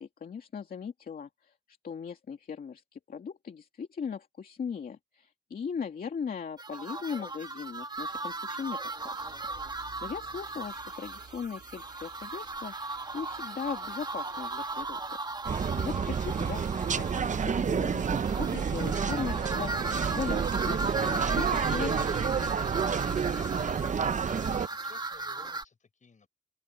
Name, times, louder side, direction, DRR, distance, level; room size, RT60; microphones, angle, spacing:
voice 1, 0.0-9.4 9.7-21.5 21.7-22.5, left 6 dB, 65° left, 2.5 m, -39 dB
sound 1, 6.6-25.6, right 3 dB, 25° right, 1.6 m, -37 dB
Car / Alarm, 9.2-20.3, right 7 dB, 75° right, 3.6 m, -57 dB
sound 2, 15.5-24.7, right 6 dB, 50° right, 0.8 m, -29 dB
voice 2, 24.6-26.3, left 5 dB, 50° left, 7.5 m, -57 dB
open air
cardioid pair, 80°, 16 cm